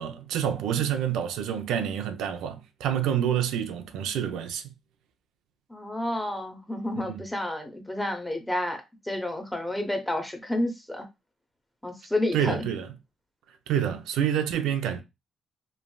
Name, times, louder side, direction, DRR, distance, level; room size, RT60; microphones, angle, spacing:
voice 1, 0.0-4.6 7.0-7.2 12.3-12.9 13.7-15.0, right 9 dB, 90° right, 0.4 m, -28 dB
voice 2, 5.7-11.0 11.8-12.6, left 1 dB, 5° left, 0.7 m, -30 dB
3.1 x 2.5 x 2.2 m
cardioid pair, 90°, 0 cm